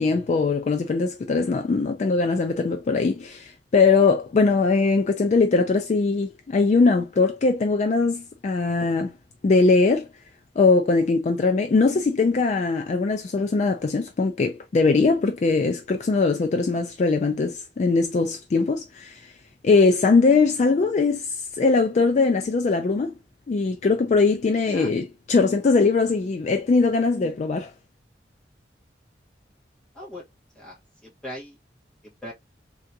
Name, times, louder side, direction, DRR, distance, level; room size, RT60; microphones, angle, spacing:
voice 1, 0.0-9.1 9.4-10.1 10.6-19.3 19.6-23.1 23.5-27.7, left 4 dB, 40° left, 0.3 m, -21 dB
voice 2, 30.5-31.6 32.0-32.3, equal, 5° left, 1.2 m, -39 dB
3.6 x 2.3 x 2.6 m
head